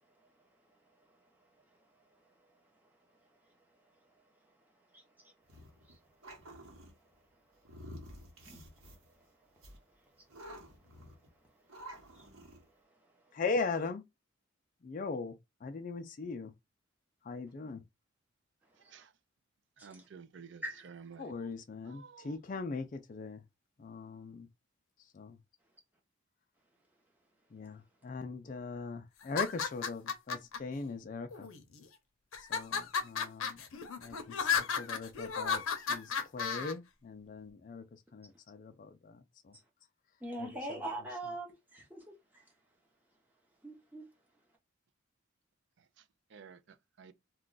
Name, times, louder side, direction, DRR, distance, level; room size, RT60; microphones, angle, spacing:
voice 1, 4.9-5.3 5.9-6.0 8.5-8.6 12.2-12.3 19.8-20.0 20.6-20.8 40.2-42.4 43.6-44.1, right 1 dB, 10° right, 0.8 m, -42 dB
sound 1, 5.5-6.9 7.6-9.2 9.6-9.8 10.3-11.3 11.7-12.6, equal, 90° right, 1.1 m, -50 dB
voice 2, 13.3-14.0 14.8-15.3 15.6-16.5 17.3-17.8 21.2-23.4 23.8-24.5 25.1-25.4 27.5-31.5 32.5-33.6 34.0-37.8 38.1-39.2 40.4-41.1, left 4 dB, 40° left, 0.3 m, -40 dB
voice 3, 19.8-21.3 21.8-22.4 46.3-46.6 47.0-47.1, right 6 dB, 55° right, 0.4 m, -52 dB
sound 2, 29.2-30.6 31.3-31.8 32.3-36.7, left 6 dB, 85° left, 0.6 m, -34 dB
2.3 x 2.2 x 3.8 m
head